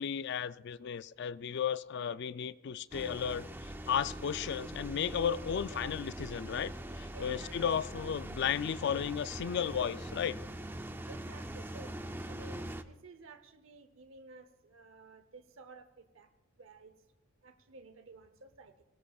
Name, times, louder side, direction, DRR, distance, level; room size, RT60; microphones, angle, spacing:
voice 1, 0.0-3.5 3.9-10.4, left 8 dB, 50° left, 0.3 m, -34 dB
sound 1, 2.9-12.8, right 1 dB, 10° right, 0.5 m, -43 dB
voice 2, 7.1-7.6 11.1-12.0 12.3-16.3 16.6-17.0 17.4-18.8, right 3 dB, 65° right, 0.8 m, -54 dB
22.5 x 17.5 x 2.4 m
head